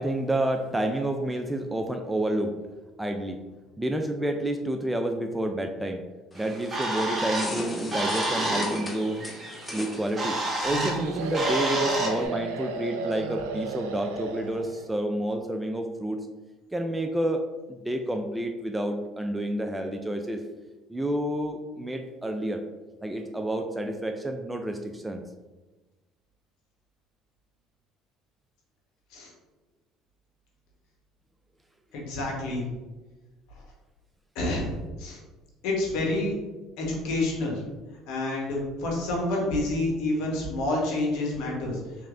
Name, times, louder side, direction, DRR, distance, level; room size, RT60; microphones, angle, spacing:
voice 1, 0.0-2.6 3.0-3.4 3.8-6.1 6.3-9.3 9.7-16.3 16.7-20.4 20.9-22.6 23.0-25.2, right 1 dB, 10° right, 4 dB, 0.3 m, -29 dB
sound 1, 6.3-11.6, left 1 dB, 20° left, 0.7 m, -38 dB
Bird, 6.4-12.3, right 1 dB, 30° right, 1.0 m, -30 dB
sound 2, 10.7-14.9, right 3 dB, 85° right, 0.3 m, -32 dB
voice 2, 31.9-32.6 34.3-35.2 35.6-36.3 36.8-37.6 38.1-41.8, left 2 dB, 70° left, -2 dB, 1.2 m, -28 dB
3.4 x 3.1 x 2.5 m, 1.2 s
hypercardioid pair, 75°, 0 cm